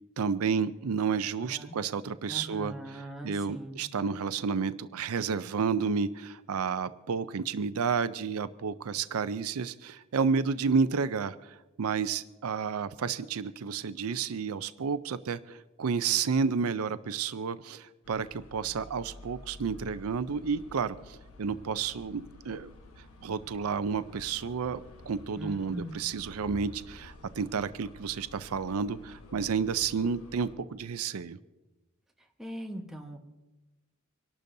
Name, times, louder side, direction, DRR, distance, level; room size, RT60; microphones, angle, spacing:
voice 1, 0.2-22.7 23.2-24.8 25.1-31.4, right 5 dB, 75° right, 13 dB, 0.5 m, -31 dB
voice 2, 1.4-1.8 2.3-3.8 25.4-26.0 32.4-33.2, equal, ahead, 1 dB, 1.1 m, -41 dB
sound 1, 18.0-30.6, left 2 dB, 75° left, 1.3 m, -51 dB
26.0 x 12.0 x 2.7 m, 1.1 s
head